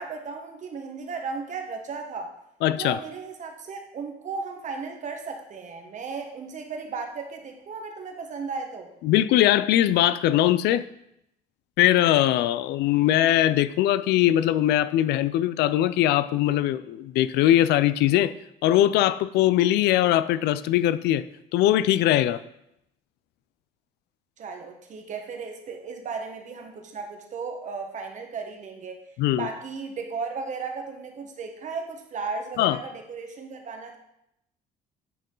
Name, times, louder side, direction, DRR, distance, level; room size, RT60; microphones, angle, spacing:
voice 1, 0.0-2.3 2.8-8.9 24.4-29.0 29.3-34.0, right 4 dB, 45° right, 4 dB, 1.3 m, -35 dB
voice 2, 2.6-3.0 9.0-10.8 11.8-18.3 18.6-21.2 21.5-22.4 29.2-29.5 32.6-32.8, left 13 dB, 80° left, 15 dB, 0.4 m, -21 dB
9.1 x 4.6 x 3.8 m, 0.79 s
cardioid pair, 110°, 17 cm